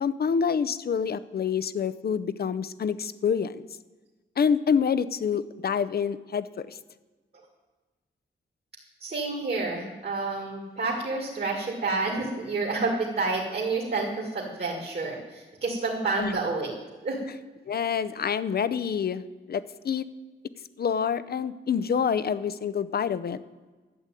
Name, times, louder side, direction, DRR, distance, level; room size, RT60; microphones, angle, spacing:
voice 1, 0.0-3.6 4.4-6.8 16.2-16.4 17.7-20.1 20.8-23.4, left 7 dB, 50° left, 14 dB, 0.6 m, -27 dB
voice 2, 9.0-16.7 17.0-17.2, right 3 dB, 50° right, -1 dB, 2.3 m, -29 dB
12.0 x 8.1 x 9.0 m, 1.3 s
wide cardioid pair, 155°, 20 cm